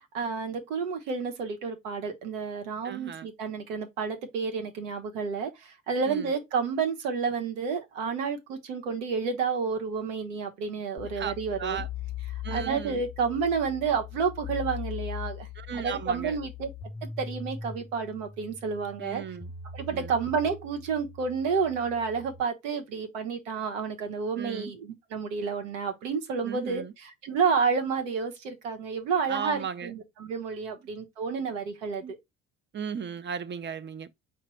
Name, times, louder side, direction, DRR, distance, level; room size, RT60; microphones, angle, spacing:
voice 1, 0.1-11.8 12.5-15.5 15.8-16.7 17.0-19.2 19.7-32.0, right 5 dB, 85° right, 1.1 m, -30 dB
voice 2, 2.8-3.3 6.0-6.3 11.1-11.3 11.6-11.9 12.4-13.0 15.6-16.4 19.0-19.5 19.9-20.1 24.4-24.7 26.4-26.9 29.3-29.9 32.0-32.1 32.7-34.1, right 8 dB, 30° right, 0.6 m, -36 dB
sound 1, 11.0-22.4, left 7 dB, 15° left, 0.5 m, -40 dB
4.9 x 2.4 x 4.3 m
hypercardioid pair, 65°, 37 cm